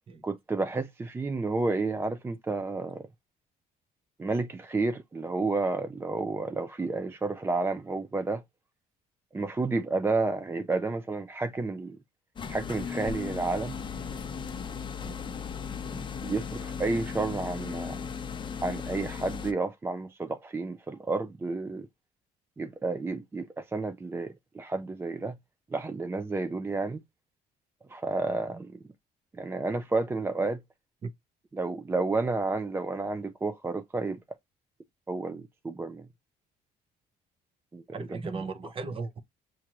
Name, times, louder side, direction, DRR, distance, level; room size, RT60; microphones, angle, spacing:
voice 1, 0.2-3.1 4.2-8.4 9.3-12.0 12.5-13.8 16.2-18.1 18.6-21.9 22.6-25.4 25.7-27.0 27.9-28.8 29.3-30.6 31.5-34.2 35.1-36.1 37.7-38.1 38.3-38.4, right 3 dB, 15° right, 0.3 m, -31 dB
sound 1, 12.4-19.5, left 6 dB, 30° left, 0.6 m, -36 dB
voice 2, 37.9-39.2, right 4 dB, 30° right, 0.7 m, -37 dB
6.0 x 2.5 x 2.9 m
cardioid pair, 110°, 17 cm